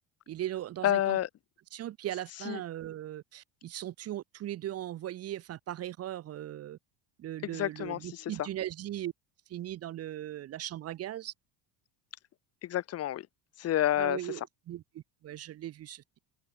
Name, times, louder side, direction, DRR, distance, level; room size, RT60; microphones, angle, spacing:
voice 1, 0.3-1.2 1.7-6.8 7.2-9.1 9.5-11.3 14.0-16.2, right 12 dB, 35° right, 0.5 m, -38 dB
voice 2, 0.8-1.3 2.5-2.6 7.4-8.3 12.6-13.3 13.6-14.2, left 12 dB, 30° left, 0.5 m, -29 dB
supercardioid pair, 90°, 48 cm